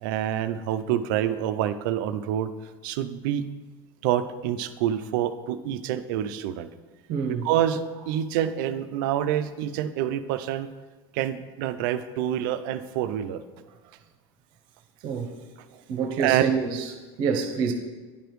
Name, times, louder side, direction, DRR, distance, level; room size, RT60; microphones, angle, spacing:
voice 1, 0.0-2.5 2.8-3.4 4.0-6.7 7.3-7.8 8.1-10.7 11.1-13.4 16.2-16.4, right 11 dB, 55° right, 11 dB, 0.4 m, -27 dB
voice 2, 7.1-7.5 15.0-15.3 15.9-16.8 17.2-17.7, right 6 dB, 35° right, 5 dB, 0.8 m, -26 dB
10.0 x 4.9 x 3.1 m, 1.3 s
supercardioid pair, 180°, 13 cm